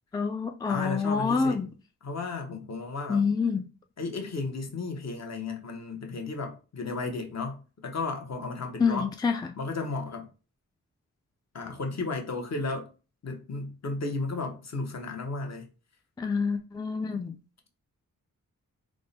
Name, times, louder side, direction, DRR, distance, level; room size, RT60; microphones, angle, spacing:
voice 1, 0.1-1.7 3.1-3.7 8.8-9.4 16.2-17.3, left 5 dB, 15° left, 0.3 m, -27 dB
voice 2, 0.7-1.7 2.0-3.2 4.0-9.1 9.6-10.3 11.5-12.9 13.2-15.7, left 3 dB, 50° left, 0.9 m, -34 dB
3.6 x 2.1 x 3.9 m
cardioid pair, 85°, 33 cm